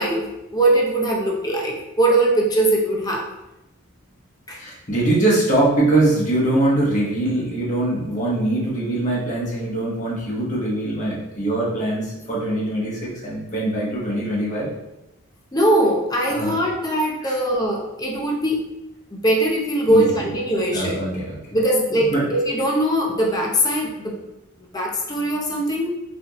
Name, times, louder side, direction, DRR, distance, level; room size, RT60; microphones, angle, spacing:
voice 1, 0.0-3.3 4.5-4.6 15.5-18.7 19.1-21.0 21.5-24.2 24.7-25.9, right 1 dB, 20° left, -2 dB, 0.5 m, -21 dB
voice 2, 4.6-14.7 16.3-16.6 17.2-17.4 19.9-20.3 20.7-21.4 22.0-22.3, right 1 dB, 35° left, -5 dB, 1.1 m, -22 dB
4.2 x 2.6 x 2.9 m, 0.97 s
head